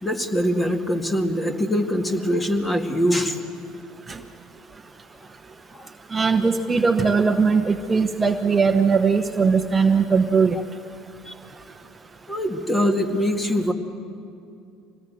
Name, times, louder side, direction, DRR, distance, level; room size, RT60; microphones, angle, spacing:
voice 1, 0.0-3.4 5.7-5.9 11.3-11.4 12.3-13.7, equal, 15° left, 5 dB, 2.0 m, -23 dB
voice 2, 6.1-10.6, right 5 dB, 20° right, 6 dB, 1.0 m, -19 dB
25.0 x 18.5 x 7.8 m, 2.5 s
supercardioid pair, 95°, 0 cm